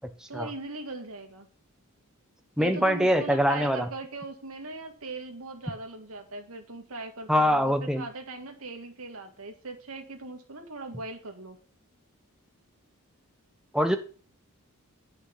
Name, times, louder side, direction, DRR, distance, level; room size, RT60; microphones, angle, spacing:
voice 1, 0.3-1.5 2.6-11.6, right 2 dB, 70° right, 4 dB, 2.0 m, -39 dB
voice 2, 2.6-3.9 7.3-8.1 13.7-14.0, equal, 5° right, 7 dB, 0.9 m, -23 dB
9.1 x 5.6 x 5.7 m, 0.38 s
head